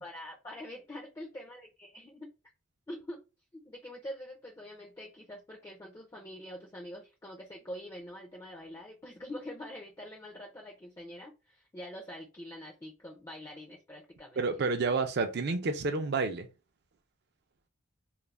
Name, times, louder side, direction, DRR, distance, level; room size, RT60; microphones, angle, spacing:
voice 1, 0.0-2.3 2.9-3.2 3.5-14.4, left 1 dB, 15° left, 0.4 m, -45 dB
voice 2, 14.4-16.5, right 3 dB, 50° right, 0.4 m, -29 dB
2.4 x 2.0 x 3.1 m
head